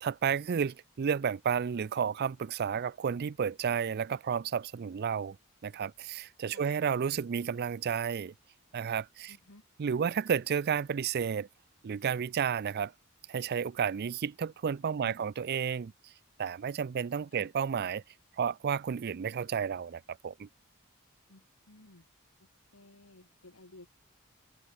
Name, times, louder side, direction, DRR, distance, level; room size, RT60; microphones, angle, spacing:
voice 1, 0.0-5.4 5.6-8.3 8.7-9.4 9.8-11.5 11.8-12.9 13.3-15.9 16.4-18.0 18.4-20.5, right 7 dB, 50° right, 0.4 m, -32 dB
voice 2, 9.3-9.6 15.0-15.3 17.3-17.5 21.3-22.1 22.7-23.9, left 2 dB, 85° left, 2.5 m, -55 dB
head